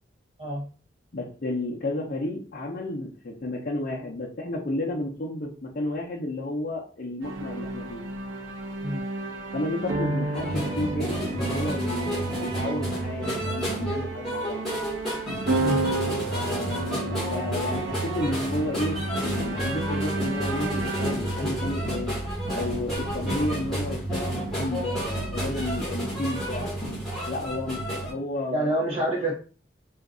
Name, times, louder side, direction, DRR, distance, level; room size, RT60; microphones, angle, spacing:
voice 1, 1.1-8.0 9.5-14.6 16.3-22.1 22.5-26.7 27.3-28.7, left 1 dB, 50° left, -3 dB, 0.5 m, -32 dB
sound 1, 7.2-22.5, right 2 dB, 80° right, 0.7 m, -32 dB
sound 2, 10.3-28.1, right 1 dB, ahead, 1.1 m, -30 dB
voice 2, 28.5-29.3, right 1 dB, 35° right, -4 dB, 0.6 m, -27 dB
2.5 x 2.3 x 3.6 m, 0.38 s
head